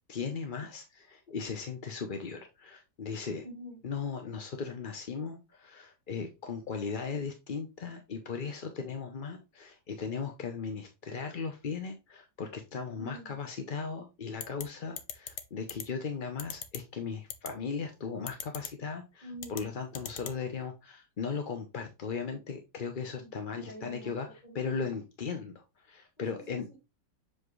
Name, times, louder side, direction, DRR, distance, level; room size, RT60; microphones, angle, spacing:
voice 1, 0.1-3.4 3.8-24.3 24.5-26.7, left 5 dB, 45° left, 0.7 m, -37 dB
voice 2, 3.4-3.8 12.9-13.4 19.2-19.7 23.0-24.9 26.2-26.8, equal, 25° left, 4.5 m, -48 dB
sound 1, 14.4-14.6 15.0-15.4 15.7-15.8 16.4-16.8 17.3-17.5 18.3-18.7 19.4-19.6 20.0-20.4, left 9 dB, 90° left, 1.5 m, -38 dB
7.4 x 4.3 x 3.1 m
omnidirectional pair, 1.8 m